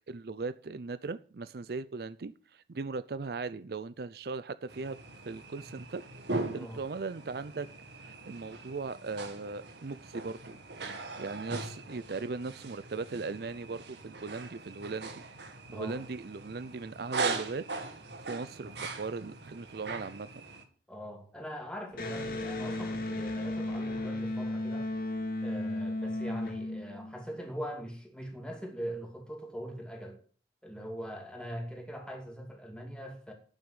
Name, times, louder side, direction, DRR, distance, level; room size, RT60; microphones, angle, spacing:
voice 1, 0.1-5.0 5.3-6.1 6.5-7.7 8.0-10.6 11.2-15.2 15.7-17.6 18.3-20.4, right 4 dB, 60° right, 0.5 m, -38 dB
sound 1, 4.7-20.6, right 3 dB, 80° right, 2.0 m, -40 dB
voice 2, 15.7-16.1 20.9-25.0 25.4-30.2 30.6-33.3, equal, 5° left, 2.4 m, -42 dB
Electric guitar, 21.9-27.4, left 1 dB, 55° left, 2.2 m, -35 dB
9.1 x 7.1 x 8.0 m
head